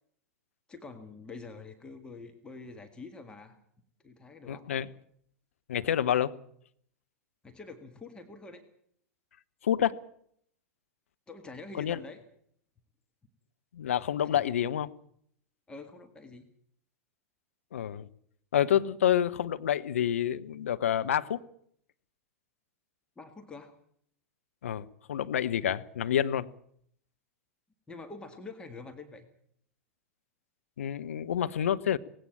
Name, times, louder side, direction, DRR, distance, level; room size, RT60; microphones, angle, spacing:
voice 1, 0.7-3.6 4.0-4.8 7.4-8.6 11.3-12.2 14.1-14.6 15.7-16.5 23.2-23.8 27.9-29.3, left 3 dB, 10° left, 6 dB, 1.9 m, -46 dB
voice 2, 4.5-4.9 5.7-6.3 9.6-9.9 11.8-12.0 13.7-14.9 17.7-18.1 18.5-21.4 24.6-26.5 30.8-32.0, left 10 dB, 65° left, 11 dB, 0.9 m, -28 dB
19.0 x 16.5 x 8.7 m, 0.66 s
figure-of-eight pair, 95°, 8 cm